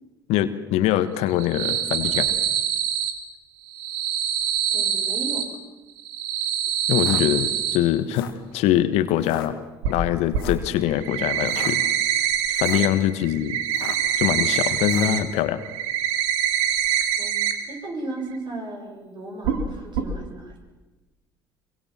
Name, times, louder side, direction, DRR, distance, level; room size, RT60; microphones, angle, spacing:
voice 1, 0.3-2.3 6.9-11.8 12.5-13.6 14.1-15.6, left 12 dB, 60° left, 12 dB, 1.5 m, -23 dB
sound 1, 1.3-3.1 3.7-5.4 6.0-7.8 9.8-9.9 10.3-10.4 10.9-12.9 13.2-15.2 15.5-17.5 17.8-17.9 18.3-18.4 19.4-19.6 19.9-20.0, right 9 dB, 65° right, 2.9 m, -24 dB
voice 2, 4.7-5.5 17.2-20.5, right 2 dB, 40° right, 2 dB, 7.8 m, -35 dB
sound 2, 6.9-7.2 8.0-8.4 9.2-9.5 10.4-10.7 11.4-11.7 12.5-12.9 13.7-14.1 14.8-15.2, left 11 dB, 75° left, 1.8 m, -38 dB
25.0 x 23.5 x 7.6 m, 1.1 s
figure-of-eight pair, 55°, 12 cm